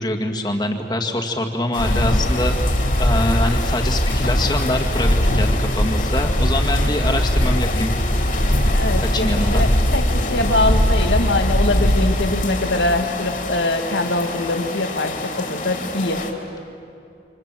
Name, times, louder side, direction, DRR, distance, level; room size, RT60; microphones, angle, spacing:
voice 1, 0.0-2.6 3.0-7.9 9.0-9.7, left 1 dB, 25° left, 3 dB, 2.0 m, -24 dB
sound 1, 1.7-16.3, left 3 dB, 50° left, 2.9 m, -30 dB
sound 2, 1.8-12.0, equal, 70° left, 2.9 m, -20 dB
voice 2, 8.7-16.2, left 2 dB, 90° left, 5 dB, 2.2 m, -23 dB
28.5 x 26.5 x 7.6 m, 2.6 s
head